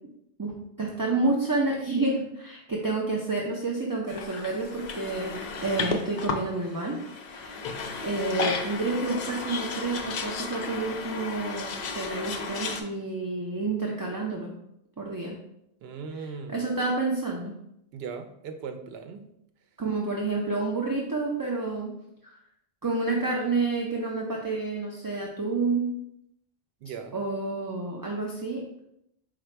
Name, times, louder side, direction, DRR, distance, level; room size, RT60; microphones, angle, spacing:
voice 1, 0.8-7.0 7.3-7.7 8.0-14.5 15.0-15.4 16.5-17.5 19.8-21.9 22.2-22.4 22.8-25.9 27.1-28.8, right 3 dB, 30° right, -2 dB, 0.4 m, -29 dB
sound 1, 4.1-12.8, left 4 dB, 55° left, 0.6 m, -34 dB
voice 2, 15.8-16.6 17.9-19.3 26.8-27.2, right 5 dB, 80° right, 7 dB, 0.8 m, -38 dB
4.9 x 2.2 x 4.4 m, 0.79 s
omnidirectional pair, 1.0 m